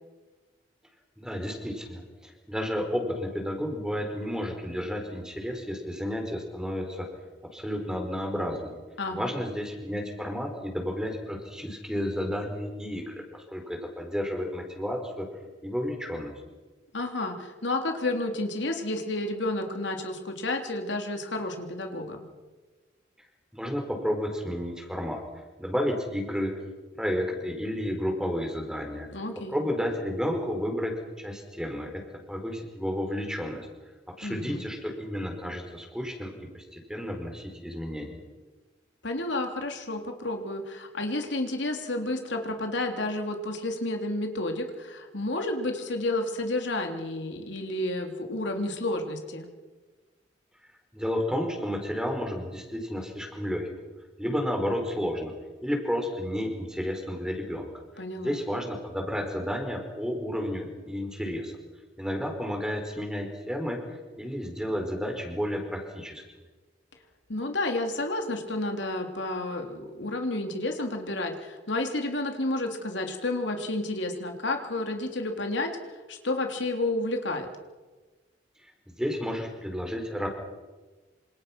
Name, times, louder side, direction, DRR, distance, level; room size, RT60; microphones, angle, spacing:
voice 1, 1.2-7.1 7.5-8.8 9.1-15.3 15.6-16.3 23.5-25.2 25.6-26.6 27.0-29.1 29.5-32.0 32.3-33.7 34.1-38.2 50.9-53.7 54.2-55.3 55.6-57.7 58.2-61.5 62.0-66.2 78.6-78.7 79.0-80.3, equal, 5° right, 3 dB, 4.9 m, -31 dB
voice 2, 9.0-9.3 16.9-22.2 29.1-29.6 34.2-34.6 39.0-49.5 58.0-58.4 67.3-77.5, left 2 dB, 75° left, 4 dB, 3.3 m, -31 dB
27.5 x 27.0 x 6.1 m, 1.3 s
head